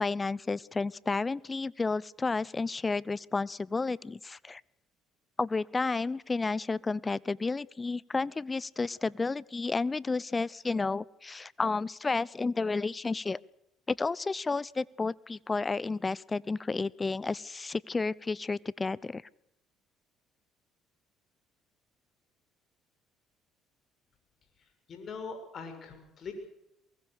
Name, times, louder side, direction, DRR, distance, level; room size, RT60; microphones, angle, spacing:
voice 1, 0.0-4.6 5.4-13.4 13.9-19.2, left 3 dB, 25° left, 23 dB, 0.8 m, -31 dB
voice 2, 24.9-26.3, left 5 dB, 50° left, 7 dB, 6.8 m, -41 dB
23.5 x 21.0 x 6.6 m, 0.81 s
hypercardioid pair, 65°, 0 cm